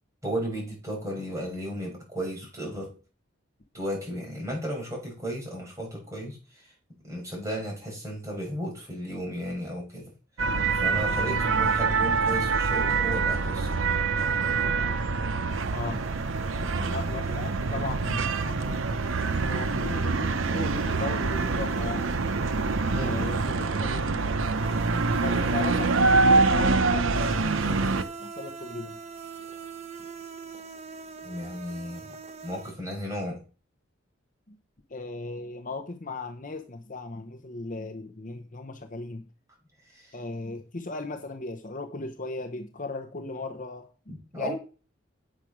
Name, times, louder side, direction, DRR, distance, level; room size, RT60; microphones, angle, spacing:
voice 1, 0.2-2.9 3.7-6.4 7.1-10.1 10.8-13.9 16.6-16.9 22.8-23.2 31.2-32.1 32.4-33.4 44.1-44.6, equal, 15° right, 5.3 m, -34 dB
sound 1, 10.4-28.0, right 4 dB, 75° right, 0.8 m, -25 dB
sound 2, 15.5-32.7, right 4 dB, 35° right, 1.0 m, -41 dB
voice 2, 15.7-16.0 16.9-22.1 23.0-24.2 25.2-29.0 34.5-34.6 34.9-39.3 40.1-43.9 44.3-44.6, left 3 dB, 40° left, 0.9 m, -37 dB
8.6 x 6.5 x 6.1 m
head